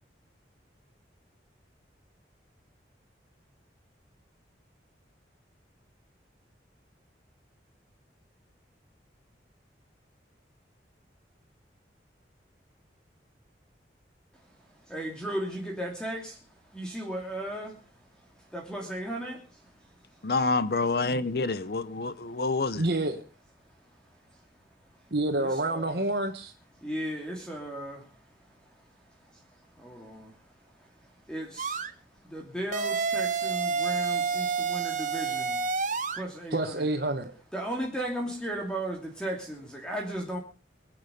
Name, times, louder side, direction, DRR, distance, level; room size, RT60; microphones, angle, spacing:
voice 1, 14.9-16.4 16.7-17.8 18.5-19.6 25.4-26.0 26.8-28.1 29.3-29.4 29.8-30.3 31.3-31.8 32.2-35.7 36.1-36.9 37.5-40.4, right 1 dB, 5° left, 2.8 m, -36 dB
voice 2, 20.2-22.8, left 3 dB, 55° left, 0.7 m, -27 dB
voice 3, 22.7-23.2 25.1-26.5 36.5-37.3, right 2 dB, 60° right, 1.6 m, -28 dB
sound 1, 31.6-31.9 32.7-36.2, right 5 dB, 45° right, 1.2 m, -29 dB
23.0 x 8.9 x 5.2 m
head